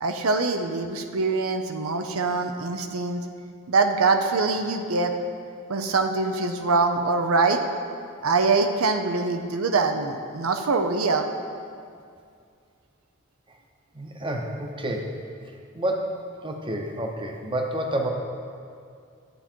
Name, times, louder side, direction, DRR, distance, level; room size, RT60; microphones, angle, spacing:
voice 1, 0.0-3.2 3.7-5.1 5.7-7.6 8.2-11.3, right 3 dB, 85° right, 6 dB, 0.7 m, -23 dB
voice 2, 13.9-15.2 15.7-16.2 16.4-18.1, right 1 dB, 25° right, 2 dB, 0.9 m, -29 dB
11.5 x 8.5 x 4.5 m, 2.4 s
head